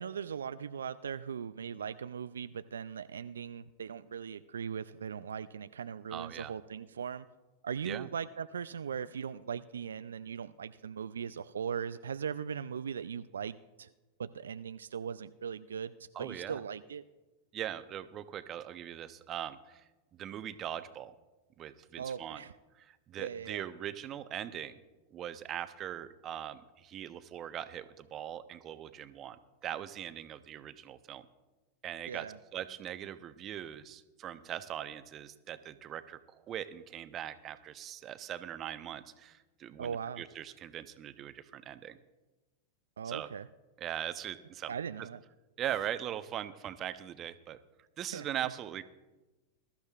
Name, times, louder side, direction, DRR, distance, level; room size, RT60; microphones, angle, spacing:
voice 1, 0.0-7.3 7.6-13.9 14.2-17.0 22.0-22.5 23.2-23.6 32.1-32.4 39.8-40.2 43.0-43.5 44.7-45.2 48.1-48.3, right 7 dB, 80° right, 12 dB, 0.3 m, -39 dB
voice 2, 6.1-6.5 7.8-8.1 16.1-16.6 17.5-19.8 20.1-21.1 21.6-22.4 22.7-24.8 25.1-29.4 29.6-31.3 31.8-32.3 32.5-42.0 43.0-43.3 43.8-44.7 45.6-47.6 48.0-48.8, right 11 dB, 35° right, 12 dB, 0.8 m, -40 dB
21.5 x 13.0 x 2.4 m, 1.1 s
hypercardioid pair, 95°, 0 cm